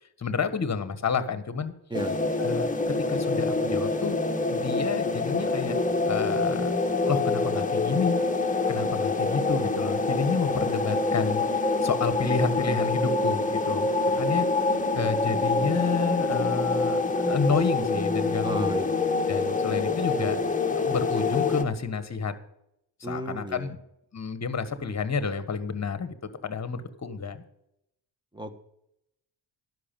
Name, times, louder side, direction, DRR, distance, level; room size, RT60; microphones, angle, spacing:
voice 1, 0.2-1.7 2.4-4.2 4.5-5.8 6.0-6.7 7.1-8.2 8.7-13.9 14.2-14.5 14.9-18.8 19.3-20.4 20.7-22.3 23.0-23.8 24.1-26.1 26.4-27.4, left 5 dB, 35° left, 12 dB, 1.4 m, -30 dB
sound 1, 1.9-21.6, left 3 dB, 15° left, 1.3 m, -26 dB
voice 2, 18.4-19.0 23.0-23.7 28.3-28.6, right 1 dB, 10° right, 10 dB, 1.2 m, -34 dB
11.0 x 6.2 x 8.9 m, 0.80 s
cardioid pair, 85°, 45 cm